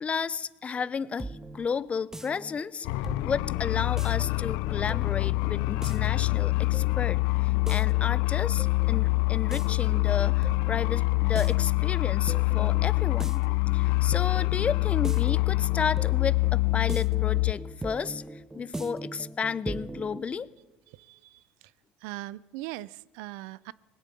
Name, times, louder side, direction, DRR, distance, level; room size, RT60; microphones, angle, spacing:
voice 1, 0.0-2.9 3.2-13.5 13.7-20.5, left 6 dB, 30° left, 19 dB, 0.6 m, -32 dB
sound 1, 0.8-20.2, right 2 dB, 10° right, 0.8 m, -42 dB
sound 2, 2.8-17.5, left 23 dB, 80° left, 0.4 m, -25 dB
voice 2, 20.9-21.7 22.0-23.7, right 17 dB, 80° right, 21 dB, 0.4 m, -40 dB
19.5 x 8.2 x 8.4 m, 1.2 s
supercardioid pair, 90°, 4 cm